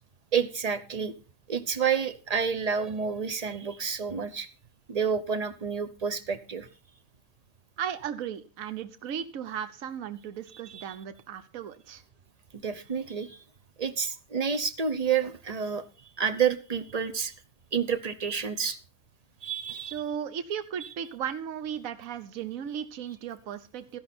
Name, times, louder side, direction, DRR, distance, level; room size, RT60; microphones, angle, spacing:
voice 1, 0.3-1.1 1.5-4.5 4.9-6.7 10.7-10.8 12.5-13.4 13.8-15.9 16.2-17.3 17.7-18.8 19.4-20.0, right 6 dB, 35° right, 11 dB, 0.7 m, -29 dB
voice 2, 7.8-12.0 19.9-24.0, right 8 dB, 65° right, 12 dB, 1.3 m, -36 dB
13.0 x 11.0 x 4.3 m, 0.32 s
omnidirectional pair, 1.6 m